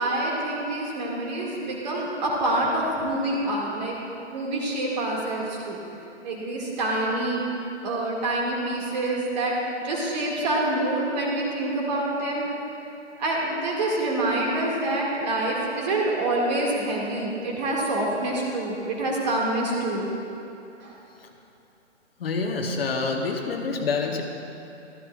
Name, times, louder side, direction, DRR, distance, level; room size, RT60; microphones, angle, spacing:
voice 1, 0.0-4.0 4.3-5.8 6.2-7.4 7.8-12.5 13.2-20.1 20.8-20.9, right 1 dB, 35° right, -3 dB, 2.1 m, -26 dB
voice 2, 22.2-24.2, left 4 dB, 50° left, 3 dB, 1.1 m, -27 dB
14.0 x 13.0 x 2.4 m, 2.9 s
figure-of-eight pair, 135°, 37 cm